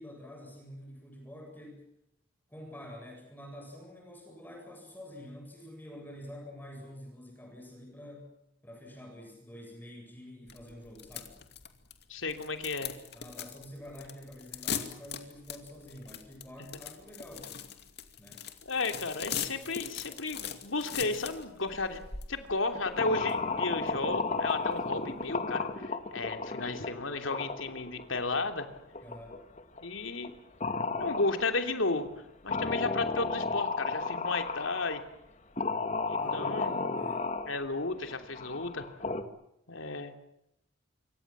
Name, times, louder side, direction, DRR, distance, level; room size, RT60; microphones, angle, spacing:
voice 1, 0.0-1.9 2.5-8.3 8.6-11.4 13.1-17.8 18.2-18.5 29.0-29.4 36.1-37.3, equal, 10° left, 1 dB, 7.8 m, -47 dB
sound 1, 10.5-25.4, left 8 dB, 55° left, 2.5 m, -41 dB
voice 2, 12.1-12.9 18.7-22.0 22.3-28.7 29.8-30.3 31.0-32.1 32.4-35.0 36.1-36.7 37.5-38.9 39.7-40.1, left 3 dB, 80° left, 7 dB, 3.1 m, -33 dB
sound 2, 22.7-29.8 30.2-30.3 30.6-31.8 32.5-35.0 35.6-39.2, left 3 dB, 35° left, 1.9 m, -33 dB
26.5 x 24.5 x 7.6 m, 0.80 s
head